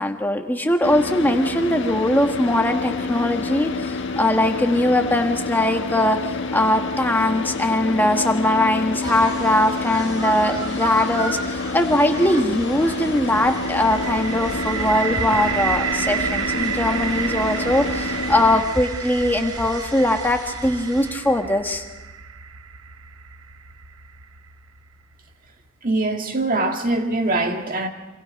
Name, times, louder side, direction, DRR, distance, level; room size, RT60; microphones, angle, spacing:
voice 1, 0.0-6.2 6.5-21.8, left 1 dB, 10° left, 1.4 m, -21 dB
Car / Idling, 0.8-18.6, left 3 dB, 60° left, 1.7 m, -28 dB
sound 1, 9.0-21.1, right 2 dB, 20° right, 3.5 m, -37 dB
sound 2, 13.3-25.1, right 8 dB, 80° right, 0.8 m, -31 dB
voice 2, 25.8-27.9, right 2 dB, 40° right, 1.9 m, -22 dB
27.0 x 26.0 x 5.3 m
head